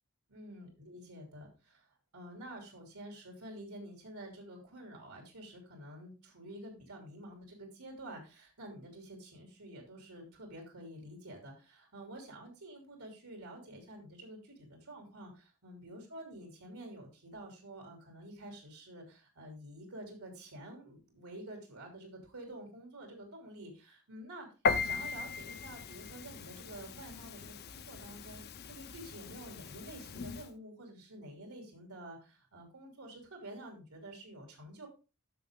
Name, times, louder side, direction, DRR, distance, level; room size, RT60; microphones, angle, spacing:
voice 1, 0.3-1.9 2.1-24.5 24.8-34.9, right 1 dB, 85° right, 3 dB, 2.9 m, -49 dB
Piano, 24.6-30.5, left 4 dB, 45° left, 0.5 m, -38 dB
10.0 x 6.5 x 3.6 m, 0.31 s
head